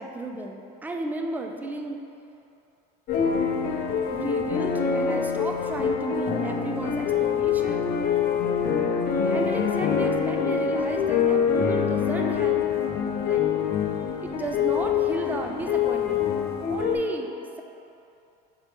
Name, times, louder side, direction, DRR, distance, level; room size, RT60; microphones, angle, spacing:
voice 1, 0.0-2.0 4.1-7.9 9.2-12.7 13.2-13.8 14.2-16.3 16.7-17.3, right 2 dB, 10° right, 3 dB, 0.3 m, -33 dB
sound 1, 3.1-16.9, left 7 dB, 45° left, 0.7 m, -25 dB
4.7 x 4.1 x 5.1 m, 2.7 s
cardioid pair, 135°, 21 cm